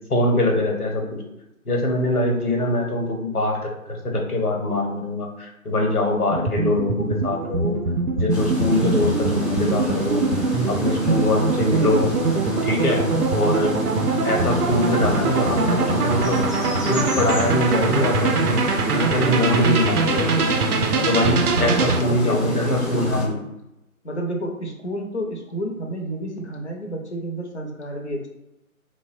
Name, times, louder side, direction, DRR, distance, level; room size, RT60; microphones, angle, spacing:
voice 1, 0.1-1.2 1.6-7.8 8.1-10.3 10.7-12.1 12.6-13.0 13.3-13.8 14.2-16.4 16.9-18.6 18.9-20.5 21.0-23.4, left 1 dB, 85° left, 1 dB, 1.0 m, -23 dB
sound 1, 6.3-22.0, right 3 dB, 85° right, 0.5 m, -23 dB
sound 2, 8.3-23.3, equal, ahead, 0.4 m, -28 dB
voice 2, 21.5-23.4 24.0-28.3, equal, 50° left, 1 dB, 0.6 m, -30 dB
3.3 x 2.0 x 2.5 m, 0.89 s
figure-of-eight pair, 175°, 44 cm